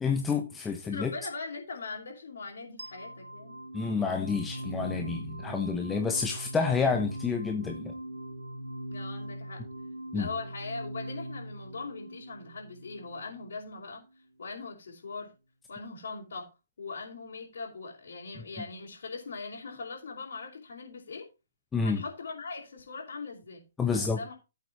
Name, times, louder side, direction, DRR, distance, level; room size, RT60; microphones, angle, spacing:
voice 1, 0.0-1.1 3.7-7.9 10.1-10.3 21.7-22.0 23.8-24.2, left 5 dB, 10° left, 1.1 m, -29 dB
voice 2, 0.9-3.6 8.9-9.6 10.1-14.0 14.4-15.3 15.7-16.5 16.8-21.3 21.8-23.6 23.9-24.3, left 4 dB, 60° left, 4.6 m, -40 dB
sound 1, 2.8-13.7, right 1 dB, 75° right, 1.9 m, -40 dB
16.0 x 8.2 x 3.0 m
figure-of-eight pair, 125°, 0 cm